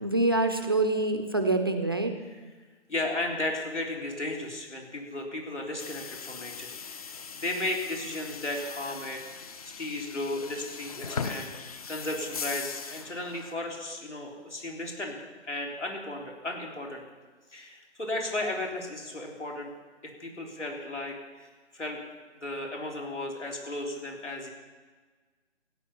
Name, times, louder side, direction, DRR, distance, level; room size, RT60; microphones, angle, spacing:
voice 1, 0.0-2.1, right 2 dB, 20° right, 7 dB, 0.5 m, -25 dB
voice 2, 2.9-7.1 7.4-9.4 9.8-11.5 11.9-15.2 15.4-17.0 17.5-19.7 20.0-22.0 22.4-24.5, left 2 dB, 80° left, 0 dB, 3.9 m, -35 dB
sound 1, 5.8-13.5, left 5 dB, 30° left, 0.7 m, -40 dB
16.0 x 9.7 x 5.6 m, 1.4 s
figure-of-eight pair, 145°, 35 cm